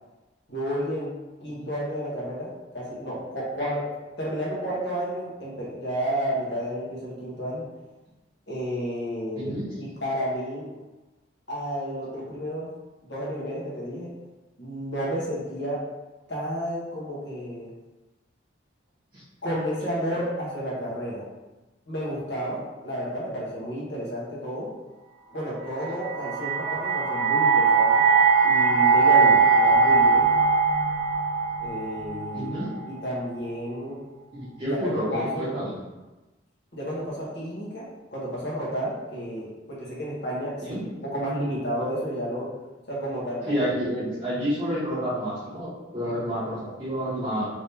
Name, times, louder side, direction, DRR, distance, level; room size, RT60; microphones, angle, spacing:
voice 1, 0.5-1.1 1.4-3.8 4.2-7.6 8.5-9.5 9.8-10.7 11.5-12.7 13.0-14.1 14.6-15.8 16.3-17.7 19.4-21.3 21.9-24.7 25.3-28.1 28.4-30.3 31.6-32.5 32.9-34.0 34.7-35.5 36.7-40.8 41.0-42.5 42.9-43.6, equal, 65° left, -7 dB, 1.2 m, -31 dB
voice 2, 9.3-9.6 19.1-19.2 32.3-32.7 34.3-35.7 40.6-40.8 43.5-47.5, equal, 30° right, -12 dB, 1.3 m, -29 dB
sound 1, 25.8-32.9, right 4 dB, 75° right, 0.6 m, -20 dB
3.4 x 2.9 x 2.8 m, 1.1 s
head